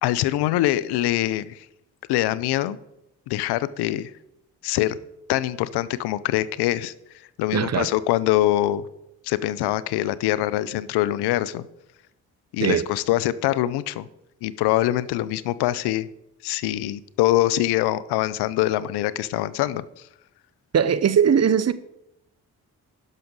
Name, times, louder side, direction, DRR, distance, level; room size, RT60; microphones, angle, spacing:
voice 1, 0.0-1.7 2.1-2.8 3.3-4.1 4.6-5.0 5.3-6.9 7.4-8.9 9.2-11.6 12.5-14.1 14.4-16.1 16.4-19.8, left 14 dB, 85° left, 0.5 m, -24 dB
voice 2, 7.5-7.9 12.6-12.9 20.7-21.7, right 7 dB, 40° right, 0.7 m, -19 dB
11.0 x 6.4 x 5.3 m
supercardioid pair, 45°, 38 cm